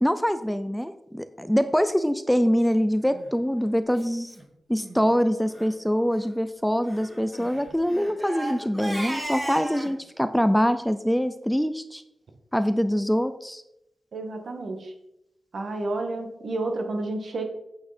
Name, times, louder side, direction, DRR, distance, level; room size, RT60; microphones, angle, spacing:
voice 1, 0.0-4.4 4.7-12.0 12.5-13.6, equal, ahead, 11 dB, 0.4 m, -24 dB
Crying sobbing, 3.0-3.3 3.9-4.0 4.3-4.4 4.8-5.0 5.4-5.7 6.8-9.9, right 1 dB, 15° right, 2.0 m, -36 dB
voice 2, 14.1-14.9 15.5-17.4, right 2 dB, 60° right, 4 dB, 1.6 m, -30 dB
8.7 x 8.2 x 4.2 m, 0.85 s
wide cardioid pair, 150°, 0 cm